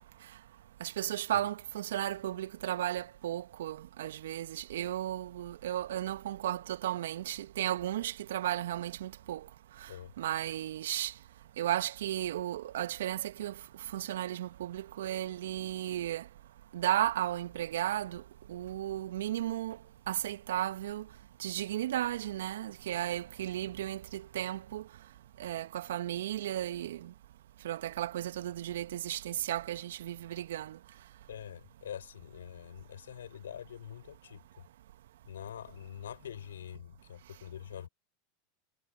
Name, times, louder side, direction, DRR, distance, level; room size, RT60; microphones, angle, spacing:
voice 1, 0.8-9.4 10.2-11.1 11.6-13.5 13.9-16.2 16.7-18.2 18.5-19.8 20.1-21.0 21.4-24.8 25.4-27.1 27.6-30.8, right 12 dB, 70° right, 1.8 m, -34 dB
voice 2, 31.3-34.4 35.2-37.9, left 9 dB, 75° left, 6.6 m, -45 dB
figure-of-eight pair, 85°, 0 cm